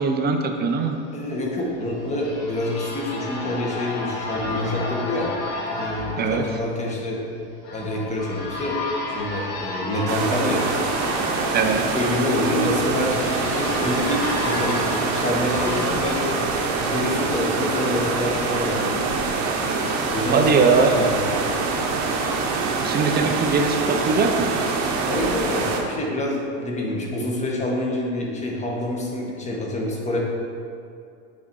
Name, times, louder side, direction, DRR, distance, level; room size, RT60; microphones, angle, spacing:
voice 1, 0.0-1.0 6.2-6.5 11.5-12.0 20.3-21.0 22.8-24.5, right 4 dB, 25° right, 4 dB, 0.6 m, -21 dB
voice 2, 1.1-5.3 5.7-7.2 7.7-8.8 9.1-10.6 11.7-19.0 20.1-20.5 20.9-21.1 24.8-30.2, left 1 dB, 20° left, -2 dB, 1.3 m, -27 dB
sound 1, 1.6-17.3, left 2 dB, 70° left, 1.6 m, -32 dB
sound 2, 10.1-25.8, right 4 dB, 45° right, 1.0 m, -25 dB
8.5 x 4.1 x 4.6 m, 2.5 s
supercardioid pair, 130°, 37 cm